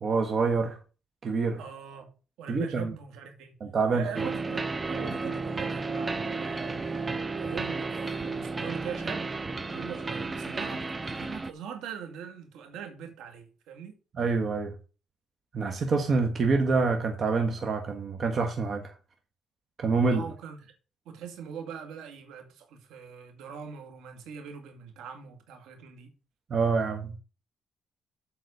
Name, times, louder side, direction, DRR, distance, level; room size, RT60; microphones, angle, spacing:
voice 1, 0.0-0.8 1.2-1.6 2.5-2.9 3.6-4.3 14.2-14.7 15.5-18.9 19.8-20.2 26.5-27.1, right 4 dB, 50° right, 1.4 m, -26 dB
voice 2, 1.6-2.1 2.4-3.5 3.9-14.0 20.1-20.7 21.1-26.1, right 7 dB, 90° right, 2.2 m, -42 dB
sound 1, 4.1-11.5, right 3 dB, 25° right, 0.7 m, -33 dB
8.1 x 4.2 x 6.6 m
cardioid pair, 90°, 0 cm